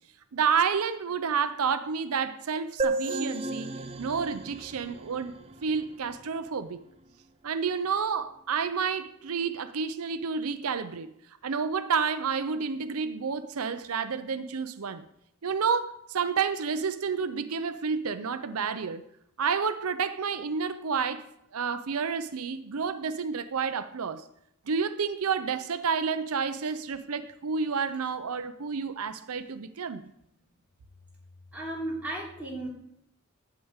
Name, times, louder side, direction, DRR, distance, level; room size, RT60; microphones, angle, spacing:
voice 1, 0.3-3.7 4.0-5.3 5.6-6.8 7.4-11.1 11.4-15.0 15.4-19.0 19.4-21.3 21.5-24.2 24.7-30.0, right 6 dB, 85° right, 0.6 m, -30 dB
sound 1, 2.8-6.3, right 3 dB, 25° right, 0.6 m, -33 dB
voice 2, 31.5-32.7, right 1 dB, 5° right, 3.3 m, -34 dB
12.0 x 5.0 x 8.1 m
head